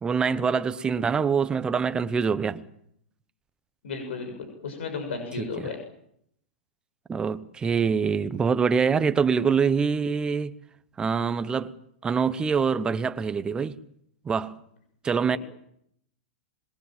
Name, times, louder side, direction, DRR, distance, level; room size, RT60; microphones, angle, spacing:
voice 1, 0.0-2.6 5.4-5.5 7.1-10.5 11.0-11.7 12.0-13.8 14.2-14.6 15.0-15.4, right 6 dB, 15° right, 1.0 m, -25 dB
voice 2, 3.8-5.8 15.3-15.4, left 4 dB, 80° left, 6.6 m, -34 dB
26.0 x 21.5 x 7.5 m
hypercardioid pair, 150°, 6 cm